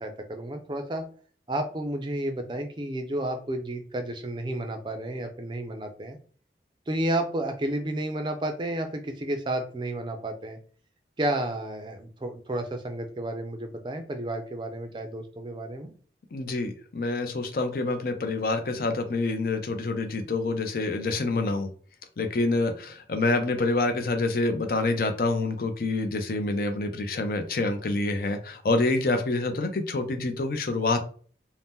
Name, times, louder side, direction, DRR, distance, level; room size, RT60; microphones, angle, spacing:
voice 1, 0.0-1.0 1.5-6.2 6.9-10.6 11.2-15.9, right 1 dB, 25° right, 6 dB, 0.4 m, -31 dB
voice 2, 16.3-21.7 22.2-31.0, left 2 dB, 55° left, 6 dB, 0.5 m, -27 dB
2.7 x 2.1 x 3.5 m, 0.43 s
head